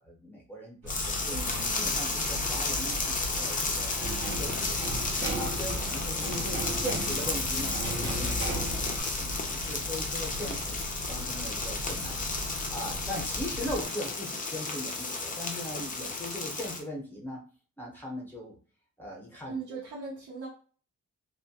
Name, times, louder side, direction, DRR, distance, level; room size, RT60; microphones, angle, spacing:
voice 1, 0.0-1.3 1.8-4.7 5.1-17.4 17.8-18.5 19.0-19.8, equal, 5° left, -3 dB, 0.7 m, -40 dB
sound 1, 0.8-13.9, left 1 dB, 90° right, 1.1 m, -39 dB
sound 2, 0.9-16.8, left 3 dB, 25° left, 0.4 m, -33 dB
voice 2, 1.3-1.9 19.5-20.5, right 4 dB, 70° right, -5 dB, 0.8 m, -39 dB
sound 3, 4.0-9.0, right 2 dB, 40° right, 0.5 m, -36 dB
2.3 x 2.1 x 2.7 m, 0.38 s
wide cardioid pair, 135°, 31 cm